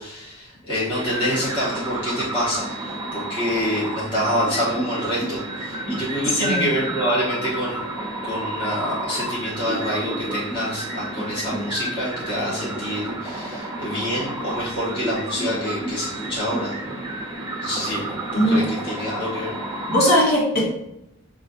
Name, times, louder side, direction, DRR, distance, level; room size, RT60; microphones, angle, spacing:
voice 1, 0.0-7.8 8.2-16.8 17.6-19.6, equal, 25° left, -8 dB, 1.0 m, -27 dB
sound 1, 0.9-20.1, right 1 dB, 20° right, 0.6 m, -31 dB
voice 2, 6.3-6.7 18.4-18.6 19.9-20.7, equal, 45° left, -5 dB, 1.3 m, -19 dB
6.1 x 2.4 x 2.6 m, 0.86 s
head